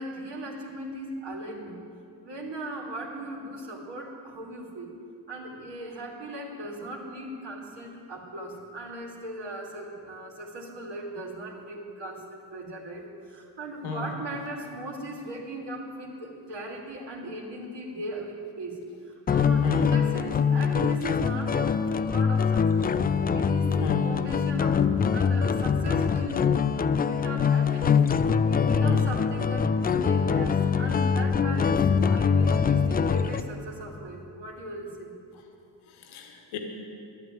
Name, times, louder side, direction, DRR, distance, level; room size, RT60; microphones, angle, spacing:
voice 1, 0.0-1.8 2.2-4.9 5.3-22.9 23.3-35.2, right 1 dB, 60° right, -2 dB, 2.7 m, -38 dB
sound 1, 19.3-33.4, left 6 dB, 20° left, 0.3 m, -23 dB
voice 2, 35.9-36.6, left 3 dB, 85° left, 2 dB, 1.9 m, -33 dB
11.0 x 9.3 x 9.1 m, 2.6 s
supercardioid pair, 70°, 49 cm